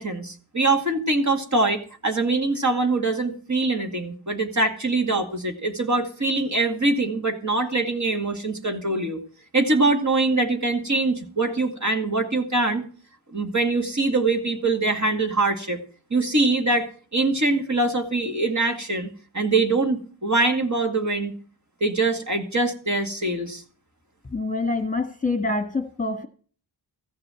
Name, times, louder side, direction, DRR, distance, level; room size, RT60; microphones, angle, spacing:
voice 1, 0.0-9.2 9.5-12.9 13.3-15.8 16.1-19.1 19.3-21.3 21.8-23.6, right 2 dB, 35° right, 4 dB, 2.1 m, -23 dB
voice 2, 24.3-26.3, left 3 dB, 15° left, 6 dB, 1.5 m, -26 dB
15.0 x 6.6 x 7.6 m, 0.43 s
wide cardioid pair, 95°, 47 cm